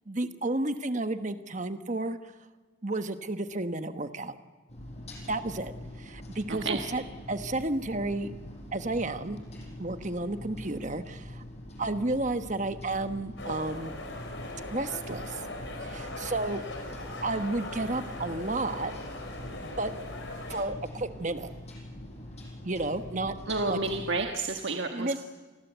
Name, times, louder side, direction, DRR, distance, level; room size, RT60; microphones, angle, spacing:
voice 1, 0.1-2.2 2.8-4.4 5.3-5.7 6.0-8.3 8.7-9.4 9.8-11.4 11.8-13.9 14.7-15.4 15.8-16.6 17.2-18.9 19.8-19.9 20.5-21.5 22.6-23.3 23.7-23.8 24.9-25.2, right 2 dB, 35° right, 9 dB, 1.2 m, -32 dB
sound 1, 4.7-24.2, left 1 dB, 30° left, 5.6 m, -44 dB
sound 2, 13.4-20.6, left 2 dB, 60° left, 5.4 m, -40 dB
voice 2, 23.5-25.2, right 3 dB, 60° right, 3 dB, 1.5 m, -30 dB
28.0 x 20.5 x 8.2 m, 1.3 s
head